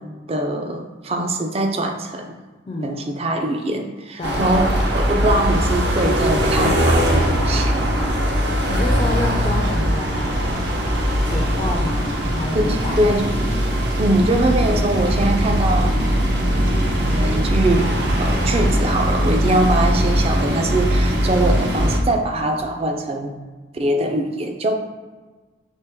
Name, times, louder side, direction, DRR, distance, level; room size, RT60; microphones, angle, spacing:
voice 1, 0.0-2.4 2.8-7.7 12.5-13.3 14.0-16.2 16.8-23.3 23.7-24.7, right 1 dB, 30° right, 4 dB, 0.4 m, -22 dB
voice 2, 2.7-3.1 4.2-4.4 8.7-10.7 11.2-13.1 19.4-19.7 22.3-22.9, left 2 dB, 30° left, -1 dB, 0.4 m, -29 dB
sound 1, 4.2-22.0, equal, 65° right, 0.7 m, -20 dB
4.4 x 2.9 x 3.5 m, 1.3 s
head